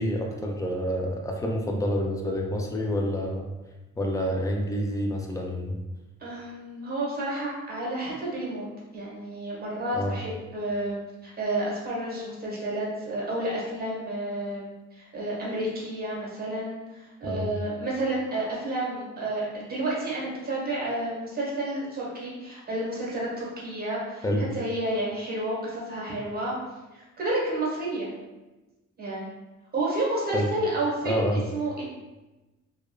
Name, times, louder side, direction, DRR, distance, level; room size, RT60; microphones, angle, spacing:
voice 1, 0.0-3.5 4.0-5.8 9.9-10.2 17.2-17.5 24.2-24.5 30.3-30.5 31.1-31.4, equal, 10° left, 1 dB, 0.4 m, -28 dB
voice 2, 6.2-8.7 8.9-26.6 26.9-28.1 29.0-29.3 29.7-31.8, right 1 dB, 30° right, -4 dB, 1.1 m, -30 dB
2.9 x 2.2 x 2.3 m, 1.1 s
cardioid pair, 90°, 30 cm